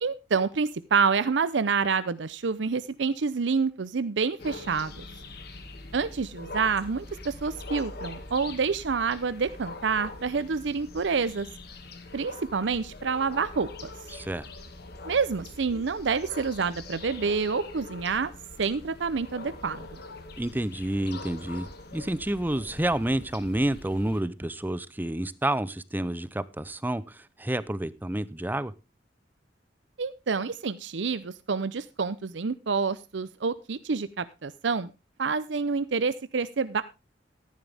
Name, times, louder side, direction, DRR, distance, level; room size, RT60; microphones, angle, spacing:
voice 1, 0.0-5.0 5.9-11.5 12.1-13.9 15.0-18.3 18.6-20.0 30.0-34.9 35.2-36.8, right 5 dB, 85° right, 0.6 m, -28 dB
sound 1, 4.4-24.2, left 2 dB, 60° left, 2.1 m, -43 dB
voice 2, 14.1-14.5 20.4-28.7, right 1 dB, 10° right, 0.6 m, -29 dB
14.0 x 10.5 x 3.4 m
head